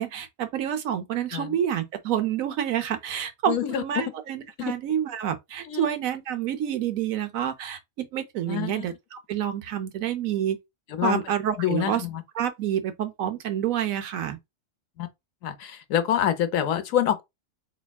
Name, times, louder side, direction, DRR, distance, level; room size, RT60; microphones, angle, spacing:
voice 1, 0.0-10.6 11.0-12.0 12.3-14.4, right 10 dB, 80° right, 1.1 m, -28 dB
voice 2, 3.5-4.0 4.6-4.7 5.7-5.8 8.5-8.8 10.9-11.2 11.6-12.2 15.0-15.1 15.4-17.2, left 10 dB, 75° left, 1.0 m, -26 dB
4.3 x 2.8 x 2.3 m
omnidirectional pair, 1.4 m